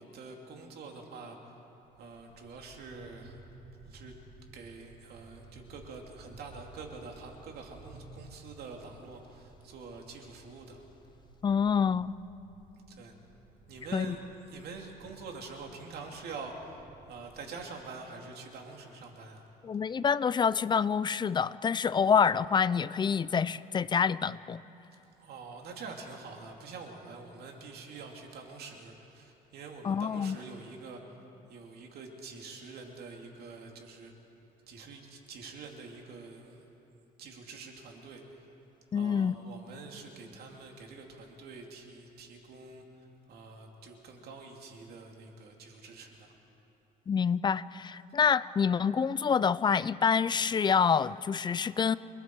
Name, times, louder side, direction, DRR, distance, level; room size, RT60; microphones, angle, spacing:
voice 1, 0.0-1.4 2.0-3.4 3.9-4.1 4.5-10.8 12.9-13.1 13.7-14.2 14.5-16.5 17.1-19.5 25.2-31.0 31.5-34.1 34.7-36.7 37.2-38.5 38.9-42.8 43.3-46.3, right 4 dB, 70° right, 2 dB, 2.8 m, -46 dB
sound 1, 1.8-17.7, right 2 dB, 50° right, 6.7 m, -55 dB
voice 2, 11.4-12.1 13.9-14.2 19.6-24.6 29.8-30.4 38.9-39.3 47.1-52.0, left 6 dB, 25° left, 17 dB, 0.5 m, -27 dB
29.5 x 20.5 x 4.7 m, 2.9 s
cardioid pair, 110°, 17 cm